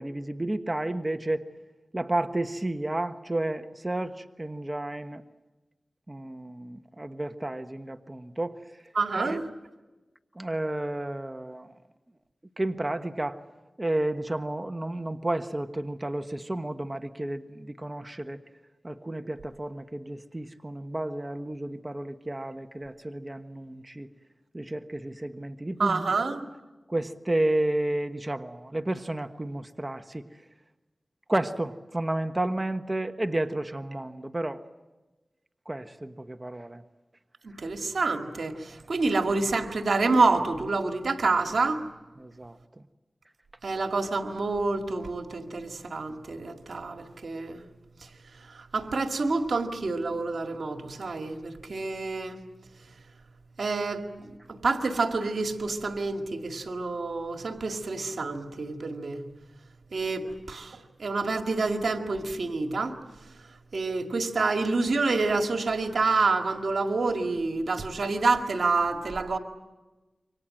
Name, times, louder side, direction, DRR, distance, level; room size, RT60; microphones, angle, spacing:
voice 1, 0.0-1.4 1.9-5.2 6.1-8.6 9.1-9.4 10.4-11.7 12.6-13.4 13.8-18.4 18.8-24.1 24.5-26.3 26.9-30.3 31.3-34.6 35.7-36.8 42.2-42.6, right 1 dB, 25° right, 7 dB, 1.3 m, -31 dB
voice 2, 8.9-9.5 25.8-26.5 37.4-41.8 43.6-47.6 48.5-52.4 53.6-59.2 59.9-63.0 63.7-69.4, right 3 dB, 85° right, 4 dB, 2.0 m, -28 dB
28.0 x 24.5 x 7.7 m, 1.1 s
cardioid pair, 45°, 0 cm